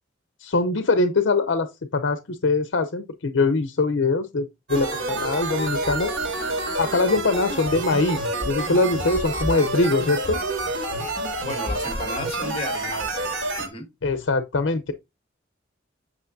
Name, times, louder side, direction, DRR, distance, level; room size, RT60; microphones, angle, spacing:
voice 1, 0.4-1.7 1.9-6.1 6.8-10.4 14.0-14.9, left 3 dB, 70° left, 0.6 m, -22 dB
sound 1, 4.7-13.7, right 2 dB, 75° right, 2.8 m, -28 dB
voice 2, 11.4-13.9, left 2 dB, 30° left, 1.7 m, -34 dB
8.2 x 6.1 x 2.6 m
head